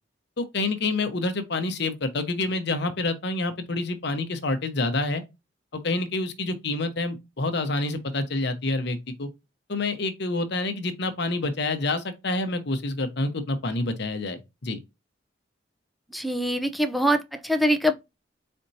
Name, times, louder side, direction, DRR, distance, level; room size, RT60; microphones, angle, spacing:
voice 1, 0.4-5.2 5.7-9.3 9.7-14.8, left 2 dB, 65° left, 0.9 m, -28 dB
voice 2, 16.1-17.9, equal, ahead, 0.5 m, -24 dB
4.3 x 4.3 x 2.7 m
head